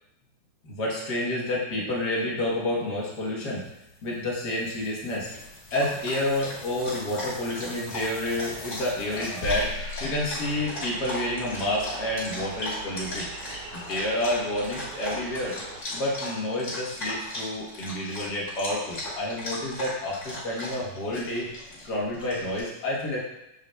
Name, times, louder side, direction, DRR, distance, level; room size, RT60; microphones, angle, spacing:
voice 1, 0.6-3.6 4.0-5.3 5.7-13.3 13.7-15.6 15.9-21.5 21.8-23.2, left 1 dB, 55° left, -4 dB, 1.1 m, -29 dB
sound 1, 3.0-11.6, left 2 dB, 80° left, 2.6 m, -41 dB
Dog, 5.2-22.6, left 1 dB, 35° left, 1.2 m, -37 dB
sound 2, 10.4-15.8, right 4 dB, 75° right, 1.7 m, -43 dB
6.9 x 6.7 x 2.2 m, 0.89 s
omnidirectional pair, 3.5 m